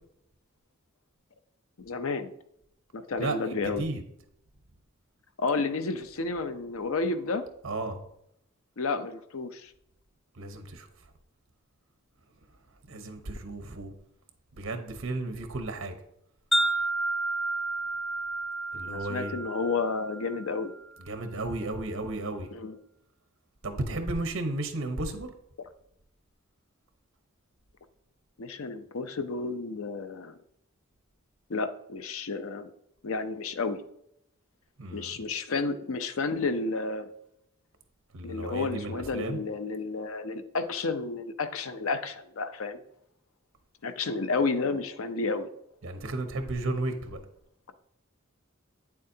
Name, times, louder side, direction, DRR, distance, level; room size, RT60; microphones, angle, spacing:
voice 1, 1.8-2.3 2.9-3.8 5.4-7.5 8.8-9.7 18.9-20.7 22.5-22.8 28.4-30.4 31.5-32.7 33.0-33.8 34.9-37.1 38.2-42.8 43.8-45.5, left 3 dB, 80° left, 9 dB, 0.6 m, -31 dB
voice 2, 3.2-4.0 7.6-8.0 10.3-10.9 12.9-13.9 14.5-15.9 18.7-19.3 21.0-22.5 23.6-25.3 34.8-35.2 38.1-39.4 45.8-47.2, right 2 dB, 70° right, 7 dB, 1.0 m, -33 dB
Wind chime, 16.5-20.8, right 2 dB, ahead, 0.6 m, -31 dB
8.7 x 7.2 x 2.8 m, 0.77 s
head